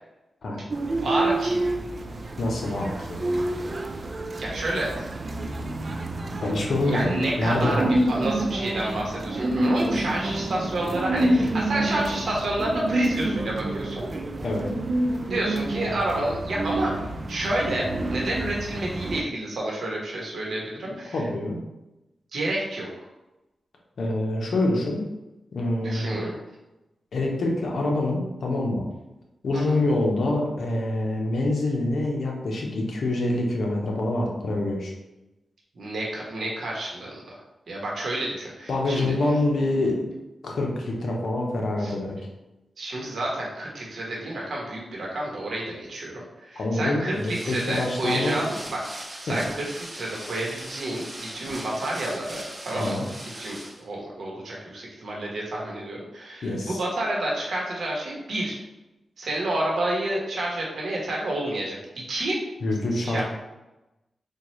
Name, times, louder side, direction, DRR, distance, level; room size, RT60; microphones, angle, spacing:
sound 1, 0.7-19.2, right 1 dB, 45° right, 0.3 m, -28 dB
voice 1, 1.0-1.7 4.4-5.1 6.8-14.1 15.3-17.0 17.3-21.1 22.3-22.9 25.8-26.3 29.5-29.7 35.7-37.2 37.7-39.1 41.8-41.9 42.8-48.8 49.2-49.7 49.9-58.6 59.2-62.4 63.0-63.2, right 1 dB, 75° right, -3 dB, 1.1 m, -29 dB
voice 2, 2.4-3.2 6.4-7.1 7.4-7.9 14.4-14.7 21.1-21.6 24.0-25.0 25.5-26.2 27.1-28.9 29.4-34.9 38.7-40.0 40.4-42.2 46.6-48.4 49.3-49.4 52.7-53.0 56.4-56.8 62.6-63.2, left 2 dB, 75° left, 0 dB, 0.8 m, -26 dB
sound 2, 47.1-53.8, right 1 dB, 25° right, 0.7 m, -40 dB
4.4 x 2.3 x 3.1 m, 0.99 s
cardioid pair, 80°, 0 cm